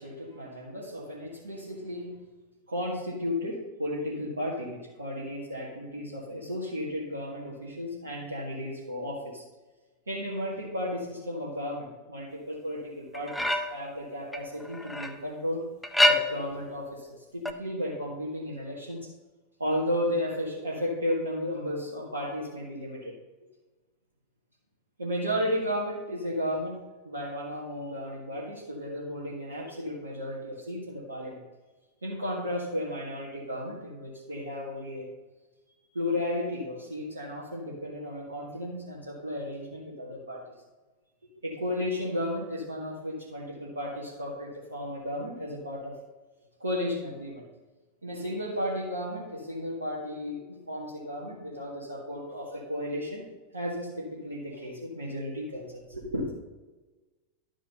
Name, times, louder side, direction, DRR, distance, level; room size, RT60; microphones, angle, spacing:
voice 1, 0.0-2.2 2.7-9.4 10.1-15.6 16.0-17.1 17.3-19.1 19.6-23.1 25.0-31.4 32.0-35.1 35.9-40.4 41.4-46.0 46.6-47.4 48.0-53.2 53.5-56.3, left 1 dB, 75° right, -6 dB, 1.9 m, -34 dB
sound 1, 13.1-13.9 14.3-15.2 15.8-16.6 17.5-17.6, left 1 dB, 5° left, 0.7 m, -26 dB
11.5 x 5.0 x 5.4 m, 1.2 s
figure-of-eight pair, 90°, 0 cm